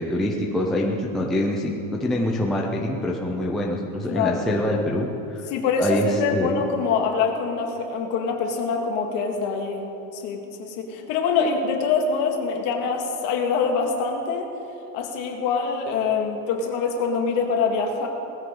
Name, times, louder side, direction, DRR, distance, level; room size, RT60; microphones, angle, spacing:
voice 1, 0.0-5.4 5.8-6.6, left 1 dB, ahead, -2 dB, 0.4 m, -25 dB
voice 2, 4.1-4.4 5.5-14.5 14.9-18.1, left 5 dB, 50° left, 2 dB, 2.0 m, -25 dB
19.0 x 14.5 x 3.8 m, 2.9 s
cardioid pair, 175°, 40 cm